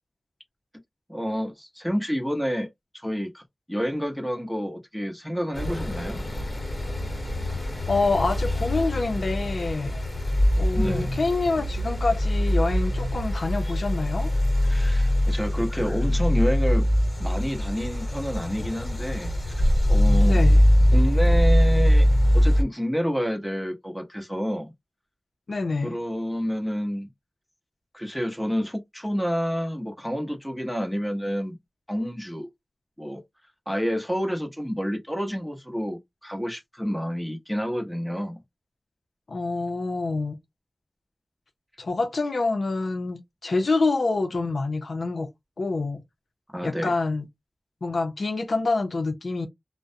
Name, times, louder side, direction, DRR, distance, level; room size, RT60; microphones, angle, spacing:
voice 1, 1.1-2.7 2.9-3.4 3.7-6.2 10.8-11.2 14.6-16.9 17.2-20.4 20.9-22.1 22.3-24.7 25.8-27.1 27.9-31.6 31.9-32.5 33.0-33.2 33.7-38.4 46.5-46.9, equal, ahead, 0.8 m, -29 dB
sound 1, 5.5-22.6, equal, 40° left, 1.1 m, -22 dB
voice 2, 7.9-9.9 10.6-14.3 20.2-20.6 25.5-26.0 39.3-40.4 41.8-45.3 45.6-46.0 46.6-47.3 47.8-49.5, left 3 dB, 75° left, 0.5 m, -26 dB
2.4 x 2.1 x 2.6 m
wide cardioid pair, 55°, 0 cm